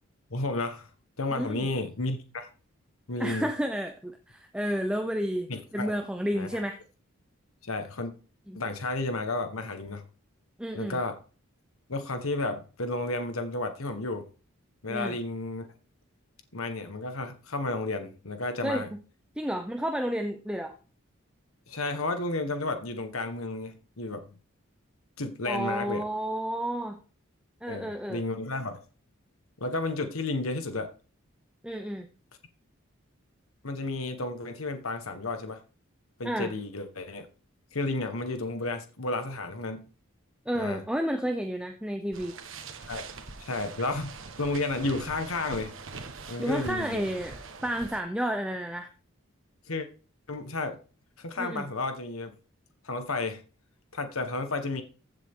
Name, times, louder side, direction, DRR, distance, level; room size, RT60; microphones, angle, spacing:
voice 1, 0.3-0.9 1.2-2.5 3.1-3.5 5.5-5.9 6.3-6.6 7.6-8.1 8.5-10.0 10.7-11.2 11.9-14.3 14.8-15.7 16.5-18.9 21.7-24.2 25.2-26.0 27.7-28.8 29.6-30.9 33.6-35.6 36.2-37.3 37.7-39.9 40.5-40.8 42.9-43.1 43.4-45.7 46.3-47.0 49.7-49.9 50.3-50.8 51.2-52.3 52.8-53.4 53.9-54.8, left 2 dB, 90° left, 1.5 m, -32 dB
voice 2, 1.3-1.7 3.2-6.8 8.5-8.6 10.6-11.0 14.9-15.2 18.6-19.0 19.4-20.7 25.5-27.0 27.6-28.2 31.6-32.1 36.2-36.5 40.5-42.4 46.4-48.9 51.4-51.7, equal, 5° right, 0.7 m, -31 dB
sound 1, 42.1-48.0, right 4 dB, 70° right, 1.4 m, -43 dB
15.0 x 7.4 x 3.8 m
head